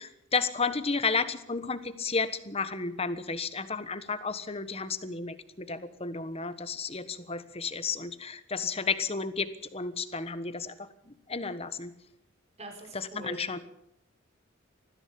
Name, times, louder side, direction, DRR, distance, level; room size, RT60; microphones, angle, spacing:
voice 1, 0.0-10.9 11.3-11.9 12.9-13.6, left 4 dB, 30° left, 12 dB, 1.3 m, -32 dB
voice 2, 12.6-13.4, right 2 dB, 30° right, 4 dB, 4.7 m, -43 dB
20.0 x 15.0 x 8.7 m, 0.76 s
head